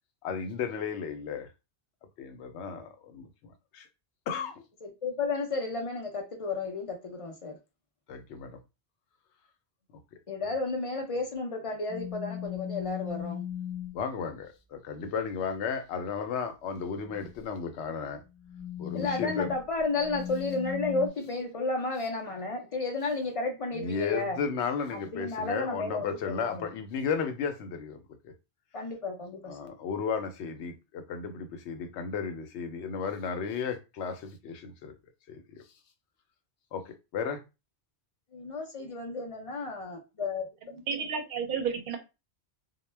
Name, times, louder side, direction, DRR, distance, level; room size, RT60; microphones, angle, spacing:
voice 1, 0.2-1.5 2.2-3.9 4.3-4.6 8.1-8.6 10.1-10.2 13.9-18.2 18.8-19.5 23.7-28.3 29.5-34.9 35.3-35.6 36.7-37.4, left 6 dB, 85° left, 0.9 m, -34 dB
voice 2, 4.8-7.6 10.3-13.4 18.9-24.4 24.9-26.7 28.7-29.7 38.3-40.4, left 3 dB, 50° left, 0.4 m, -32 dB
sound 1, 11.9-14.0 17.0-17.4 18.2-21.1, left 10 dB, 5° left, 0.7 m, -38 dB
voice 3, 40.9-42.0, right 6 dB, 55° right, 0.7 m, -31 dB
2.1 x 2.1 x 3.2 m
omnidirectional pair, 1.1 m